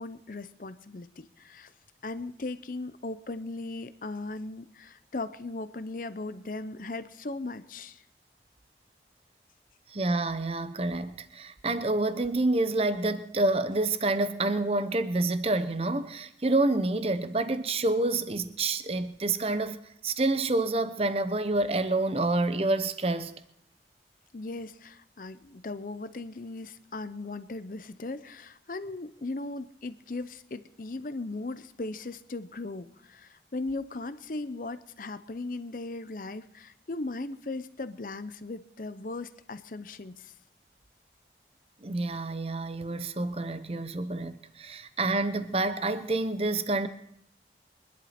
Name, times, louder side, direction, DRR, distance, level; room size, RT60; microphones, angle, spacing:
voice 1, 0.0-1.7 2.0-8.0 24.3-40.3, left 2 dB, 50° left, 0.6 m, -38 dB
voice 2, 9.9-23.3 41.8-46.9, right 2 dB, 35° right, 0.8 m, -28 dB
24.0 x 11.0 x 4.3 m
head